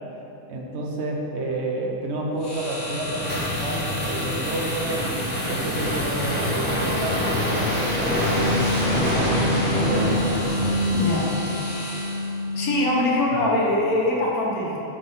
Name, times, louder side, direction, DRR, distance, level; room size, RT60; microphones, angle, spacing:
voice 1, 0.5-8.6 9.4-10.3 13.3-13.4, right 2 dB, 55° right, -1 dB, 1.0 m, -30 dB
sound 1, 2.4-12.5, left 1 dB, 50° left, 1.9 m, -35 dB
sound 2, 2.6-11.4, equal, 10° left, 1.1 m, -26 dB
sound 3, 4.8-13.6, left 2 dB, 85° right, 1.3 m, -30 dB
voice 2, 10.9-11.3 11.7-12.0 12.5-14.8, left 1 dB, 85° left, -4 dB, 1.5 m, -23 dB
6.5 x 3.7 x 5.3 m, 2.9 s
omnidirectional pair, 1.5 m